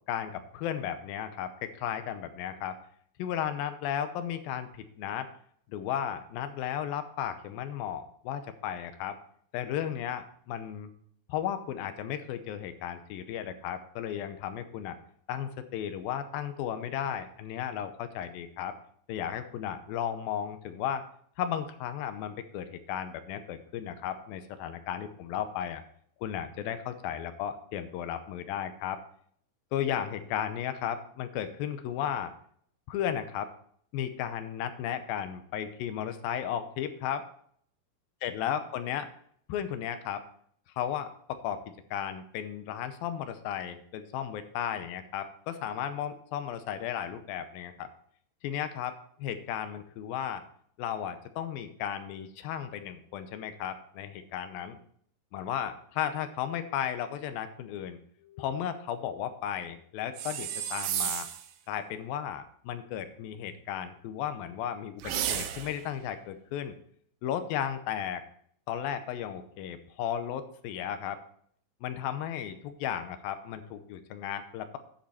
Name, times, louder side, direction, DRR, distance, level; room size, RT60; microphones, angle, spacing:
voice 1, 0.1-2.8 3.2-5.3 5.7-9.2 9.5-10.9 11.3-15.0 15.3-18.8 19.1-21.0 21.4-25.8 26.2-29.0 29.7-32.3 32.9-33.5 33.9-37.2 38.2-39.1 39.5-40.2 40.8-41.6 41.9-47.9 48.4-50.4 50.8-54.8 55.3-61.3 61.7-66.7 67.2-68.2 68.7-71.2 71.8-74.8, left 9 dB, 75° left, 9 dB, 2.4 m, -34 dB
sound 1, 60.2-61.5 65.0-65.9, right 10 dB, 75° right, 2.0 m, -32 dB
10.5 x 7.8 x 4.2 m, 0.63 s
omnidirectional pair, 4.7 m